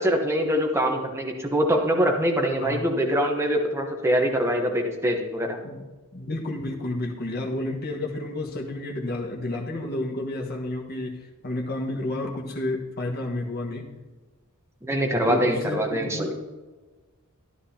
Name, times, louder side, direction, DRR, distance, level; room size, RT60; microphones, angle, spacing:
voice 1, 0.0-5.6 14.8-16.3, equal, 10° right, 2 dB, 1.1 m, -24 dB
voice 2, 6.1-13.9 15.3-16.3, left 2 dB, 45° left, -1 dB, 1.5 m, -31 dB
13.0 x 11.0 x 2.8 m, 1.3 s
head